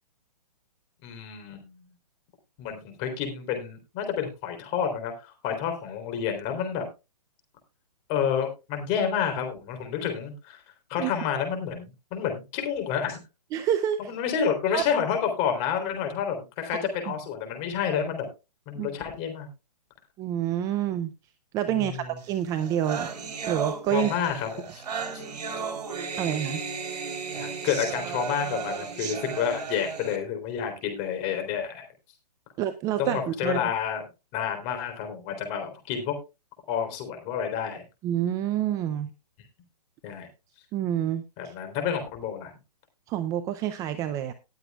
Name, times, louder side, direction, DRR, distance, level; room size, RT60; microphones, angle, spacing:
voice 1, 1.0-1.9 2.6-6.9 8.1-10.6 10.9-13.2 14.0-18.3 18.7-19.5 21.7-22.2 23.9-24.8 27.4-31.8 33.0-34.0 34.3-36.2 36.7-37.8 40.0-40.3 41.4-42.5, left 8 dB, 30° left, 5 dB, 3.6 m, -29 dB
voice 2, 13.5-14.1 14.7-14.8 18.8-18.9 20.2-21.1 21.5-23.1 23.5-24.1 26.2-26.6 32.6-33.6 38.0-39.1 40.7-41.5 43.1-44.3, right 11 dB, 15° right, 11 dB, 0.5 m, -28 dB
sound 1, 22.3-22.4 22.6-30.2, right 5 dB, 75° right, 3.7 m, -34 dB
19.5 x 7.8 x 2.4 m, 0.27 s
hypercardioid pair, 145°, 21 cm